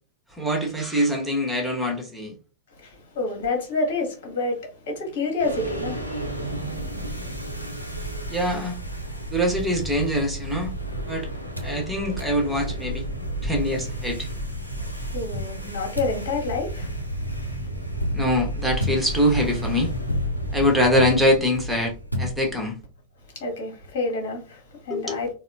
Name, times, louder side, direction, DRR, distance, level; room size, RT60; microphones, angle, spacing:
voice 1, 0.4-2.3 8.3-8.8 9.3-10.7 11.1-11.3 11.6-13.0 13.4-14.3 18.1-19.9 20.5-21.9 22.2-22.8 24.9-25.2, equal, 5° right, 1.0 m, -23 dB
voice 2, 2.7-6.2 15.1-16.9 23.3-25.3, left 3 dB, 55° left, 1.2 m, -28 dB
sound 1, 5.4-22.7, right 1 dB, 85° left, 0.6 m, -32 dB
sound 2, 9.5-11.1 11.6-11.8 12.2-12.4 12.9-13.0 13.2-14.3 15.3-22.9, left 1 dB, 85° right, 0.5 m, -33 dB
4.0 x 2.0 x 2.6 m
figure-of-eight pair, 90°, 0 cm